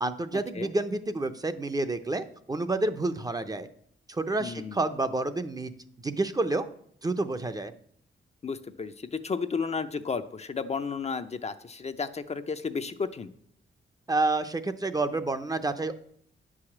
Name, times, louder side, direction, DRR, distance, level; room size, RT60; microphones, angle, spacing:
voice 1, 0.0-3.7 4.1-5.7 6.0-6.7 7.0-7.7 14.1-16.0, right 2 dB, 20° right, 9 dB, 0.6 m, -29 dB
voice 2, 4.4-4.8 8.4-13.3, left 5 dB, 35° left, 9 dB, 0.5 m, -33 dB
9.4 x 4.9 x 7.2 m, 0.65 s
wide cardioid pair, 130°, 20 cm